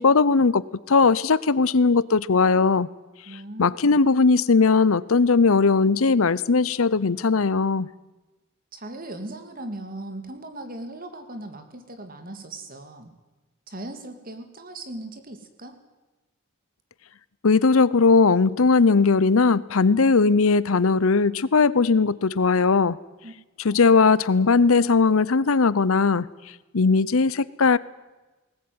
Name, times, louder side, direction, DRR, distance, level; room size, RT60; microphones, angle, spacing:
voice 1, 0.0-2.9 3.6-7.9 17.4-23.0 23.6-26.3 26.7-27.8, left 4 dB, 75° left, 19 dB, 0.7 m, -19 dB
voice 2, 3.3-4.0 8.7-13.1 13.7-15.8 23.2-23.3 23.7-23.8, right 1 dB, 40° right, 7 dB, 2.7 m, -38 dB
20.0 x 18.5 x 9.6 m, 1.1 s
head